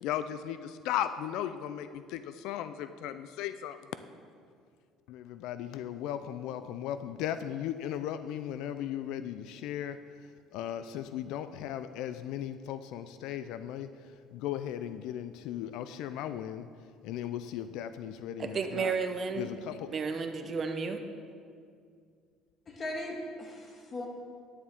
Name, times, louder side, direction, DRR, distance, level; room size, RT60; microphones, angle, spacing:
voice 1, 0.0-3.8 5.1-10.0 10.5-13.9 14.3-16.7 17.0-18.9 19.4-19.9, left 10 dB, 75° left, 12 dB, 0.3 m, -36 dB
voice 2, 18.4-19.5 19.9-21.0, right 5 dB, 35° right, 7 dB, 0.7 m, -32 dB
voice 3, 22.7-24.1, left 1 dB, 35° left, 1 dB, 1.6 m, -38 dB
10.0 x 9.7 x 3.6 m, 2.2 s
cardioid pair, 125°, 0 cm